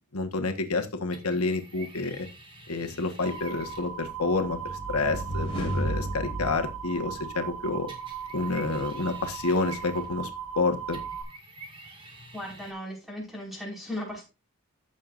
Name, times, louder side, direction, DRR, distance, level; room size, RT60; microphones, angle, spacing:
voice 1, 0.1-2.3 2.7-7.9 8.3-10.3 10.5-11.0, left 3 dB, 85° left, 5 dB, 1.4 m, -29 dB
sound 1, 1.1-4.0 7.9-10.3 10.9-12.7, right 2 dB, 25° right, 1.9 m, -48 dB
sound 2, 3.2-11.2, right 8 dB, 90° right, 2.6 m, -38 dB
sound 3, 4.1-7.6, equal, 25° left, 4.9 m, -34 dB
voice 2, 12.3-14.2, left 1 dB, ahead, -3 dB, 5.1 m, -37 dB
15.0 x 6.6 x 2.5 m, 0.28 s
head